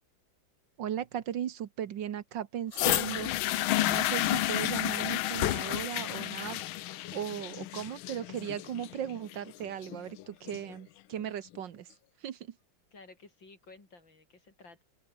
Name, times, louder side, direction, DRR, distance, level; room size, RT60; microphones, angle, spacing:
voice 1, 0.8-3.3 3.9-6.6 6.9-11.9 12.2-12.6, right 10 dB, 65° right, 1.7 m, -37 dB
sound 1, 2.7-10.7 11.5-11.6, left 15 dB, 90° left, 1.6 m, -31 dB
voice 2, 12.9-14.8, left 3 dB, 70° left, 6.0 m, -54 dB
open air
omnidirectional pair, 2.2 m